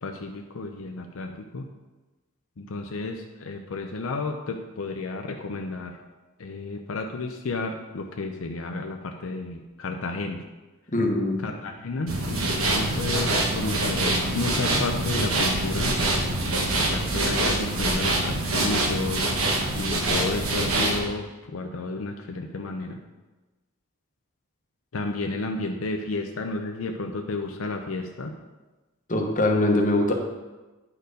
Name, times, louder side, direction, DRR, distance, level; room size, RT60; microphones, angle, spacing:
voice 1, 0.0-1.7 2.6-6.0 6.4-10.4 11.4-15.9 16.5-19.5 19.8-23.0 24.9-28.3, left 3 dB, 75° left, 4 dB, 0.6 m, -32 dB
voice 2, 10.9-11.4 29.1-30.1, left 2 dB, 40° left, 2 dB, 1.1 m, -22 dB
sound 1, 12.1-21.0, right 2 dB, 80° right, 1.4 m, -25 dB
9.7 x 4.5 x 5.1 m, 1.2 s
head